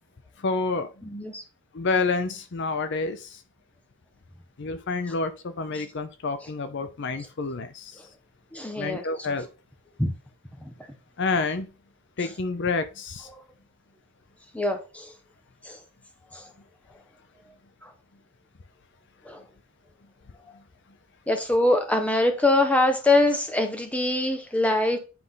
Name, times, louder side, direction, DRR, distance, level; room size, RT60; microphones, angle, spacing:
voice 1, 0.4-1.0 1.7-3.4 4.6-8.0 8.8-9.5 11.2-11.7 12.2-13.3, left 3 dB, 55° left, 0.6 m, -28 dB
voice 2, 1.0-1.4 5.7-5.8 8.5-9.0 10.0-10.1 10.6-10.7 14.5-15.1 15.6-15.8 16.3-16.4 17.8-17.9 19.2-19.4 21.3-25.0, left 2 dB, 5° left, 1.1 m, -23 dB
9.9 x 3.9 x 3.8 m
head